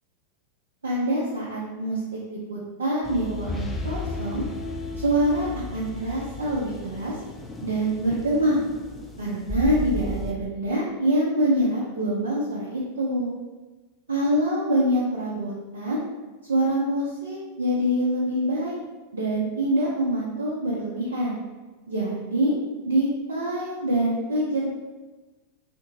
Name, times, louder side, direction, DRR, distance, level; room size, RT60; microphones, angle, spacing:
voice 1, 0.8-2.0 2.3-4.5 5.0-7.1 7.6-8.6 9.2-13.3 14.1-16.0 16.5-18.8 19.1-21.4 21.9-22.5 22.8-24.7, right 1 dB, 70° right, -6 dB, 0.6 m, -25 dB
sound 1, 3.0-10.3, left 2 dB, 10° left, 0.4 m, -34 dB
3.7 x 2.6 x 2.6 m, 1.2 s
figure-of-eight pair, 90°, 0 cm